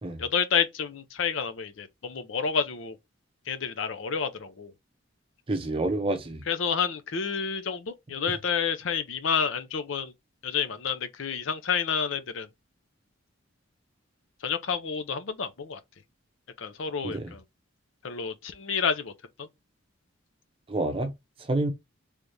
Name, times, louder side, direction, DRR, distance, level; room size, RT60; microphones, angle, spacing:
voice 1, 0.2-3.0 3.5-4.7 6.5-10.1 10.4-12.5 14.4-15.8 16.6-17.4 18.0-19.1 19.4-19.5, left 6 dB, 75° left, 0.6 m, -29 dB
voice 2, 5.5-6.4 17.0-17.3 20.7-21.1 21.5-21.7, right 2 dB, 30° right, 0.6 m, -28 dB
3.5 x 3.2 x 2.6 m
head